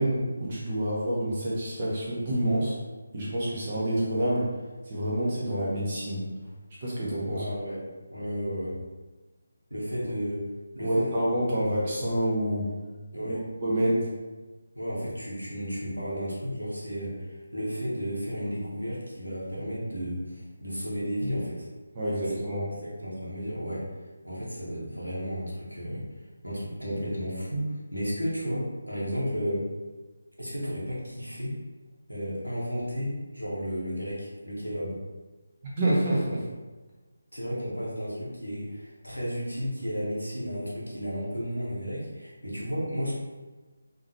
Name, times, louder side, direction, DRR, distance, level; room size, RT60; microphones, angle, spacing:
voice 1, 0.0-2.8 3.1-4.5 4.9-6.3 6.8-7.5 10.8-12.7 13.2-13.3 13.6-14.1 21.9-22.7 35.6-36.4, right 1 dB, 30° right, -6 dB, 0.9 m, -27 dB
voice 2, 7.3-7.8 8.1-8.8 9.7-10.4 10.7-11.8 13.1-13.4 14.7-21.7 22.2-22.3 22.8-23.9 24.2-26.1 26.4-29.7 30.4-31.6 32.1-35.0 37.3-43.1, equal, 85° right, -5 dB, 1.2 m, -33 dB
3.8 x 2.9 x 3.0 m, 1.3 s
figure-of-eight pair, 155°, 0 cm